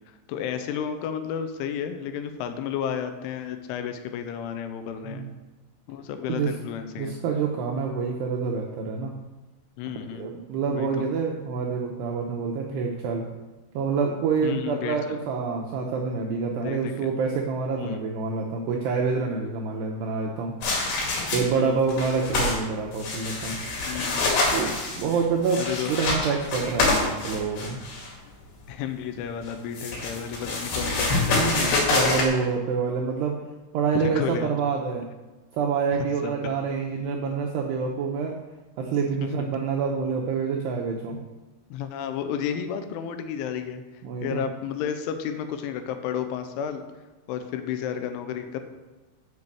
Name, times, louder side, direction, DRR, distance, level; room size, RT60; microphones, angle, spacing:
voice 1, 0.3-5.3 5.9-7.1 9.8-10.3 10.7-11.0 14.4-15.0 16.6-17.1 17.8-18.1 21.4-21.9 23.9-24.3 25.5-25.9 28.7-32.0 33.9-34.5 36.0-36.4 39.4-39.5 41.7-43.8 44.2-46.8 47.3-48.6, left 8 dB, 85° left, 8 dB, 3.1 m, -32 dB
voice 2, 7.0-9.1 10.1-13.2 13.7-20.5 21.3-23.6 24.5-27.8 31.2-33.4 33.7-35.1 35.5-38.4 38.8-41.2 44.0-44.5, right 5 dB, 85° right, 0 dB, 2.4 m, -27 dB
sound 1, 20.6-21.6 21.9-22.6 22.9-28.1 29.4-32.3, left 3 dB, 60° left, 3.8 m, -26 dB
7.9 x 5.3 x 7.2 m, 1.2 s
omnidirectional pair, 5.6 m